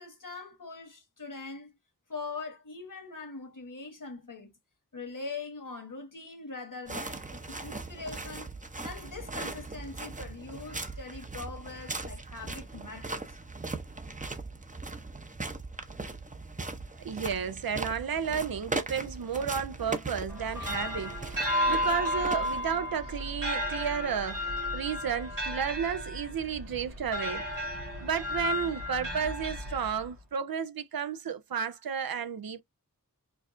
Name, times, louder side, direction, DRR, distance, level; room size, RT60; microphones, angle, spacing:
voice 1, 0.0-1.7 2.1-4.5 4.9-8.5 8.8-13.4, left 4 dB, 65° left, 1.3 m, -42 dB
sound 1, 6.9-22.9, right 3 dB, 20° right, 0.6 m, -39 dB
voice 2, 17.0-24.4 24.7-27.5 28.0-32.6, right 7 dB, 80° right, 0.5 m, -32 dB
sound 2, 20.3-30.2, left 1 dB, 65° right, 1.8 m, -33 dB
4.5 x 2.4 x 2.5 m
wide cardioid pair, 45°, 35 cm